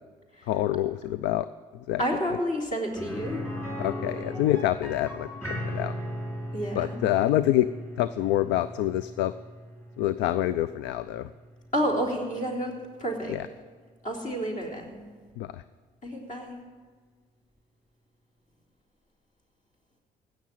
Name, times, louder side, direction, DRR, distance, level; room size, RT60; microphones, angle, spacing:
voice 1, 0.5-1.5 1.7-2.0 3.8-5.9 6.7-7.7 8.0-9.3 10.0-11.3 13.3-13.5 15.4-15.6, left 13 dB, 75° left, 15 dB, 0.4 m, -26 dB
voice 2, 2.0-3.4 6.5-7.0 11.7-12.7 13.0-13.4 14.0-15.0 16.0-16.5, equal, 45° left, -1 dB, 3.8 m, -29 dB
sound 1, 3.0-12.7 13.0-13.1 15.6-15.7, equal, 15° left, 5.5 m, -38 dB
16.5 x 6.6 x 8.8 m, 1.5 s
hypercardioid pair, 60°, 18 cm